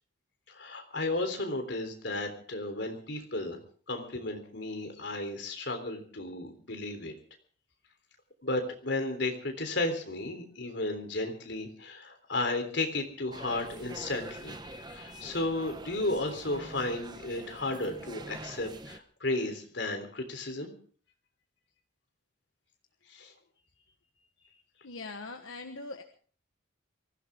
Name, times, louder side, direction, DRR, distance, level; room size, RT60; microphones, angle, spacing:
voice 1, 0.5-3.6 3.9-7.1 8.4-20.7 23.1-23.3, left 2 dB, 60° left, 5 dB, 3.6 m, -34 dB
sound 1, 13.3-19.0, right 2 dB, 20° right, 0.9 m, -45 dB
voice 2, 24.8-26.0, left 3 dB, 85° left, 5 dB, 1.3 m, -41 dB
23.5 x 16.0 x 3.7 m, 0.43 s
head